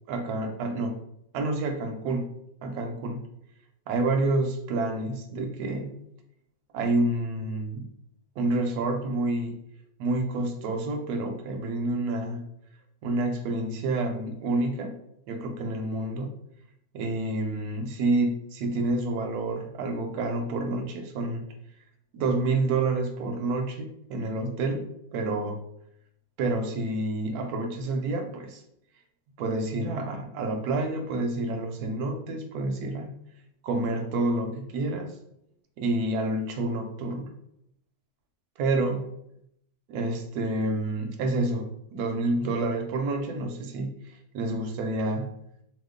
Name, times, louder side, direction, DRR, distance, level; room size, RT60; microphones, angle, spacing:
voice 1, 0.1-1.0 1.3-2.3 2.6-3.2 3.9-5.9 6.7-7.9 8.4-9.6 10.0-12.5 13.0-15.0 15.3-16.3 16.9-21.4 22.1-25.6 26.4-28.6 29.4-33.1 33.6-35.1 35.8-37.3 38.6-39.1 39.9-44.0 44.3-45.3, right 2 dB, 70° right, 5 dB, 1.0 m, -28 dB
2.8 x 2.3 x 3.6 m, 0.75 s
omnidirectional pair, 1.9 m